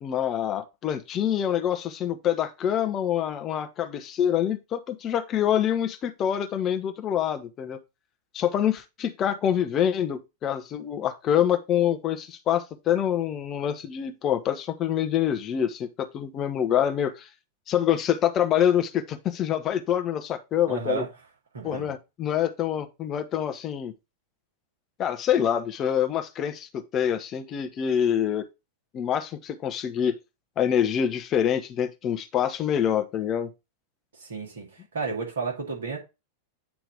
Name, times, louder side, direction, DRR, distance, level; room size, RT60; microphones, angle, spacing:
voice 1, 0.0-7.8 8.3-17.3 17.7-21.0 21.6-23.9 25.0-28.5 28.9-30.1 30.6-33.5, left 9 dB, 30° left, 0.8 m, -26 dB
voice 2, 20.7-21.1 21.5-21.9 34.1-36.0, right 5 dB, 65° right, 2.3 m, -32 dB
8.3 x 3.0 x 5.0 m
figure-of-eight pair, 90°, 0 cm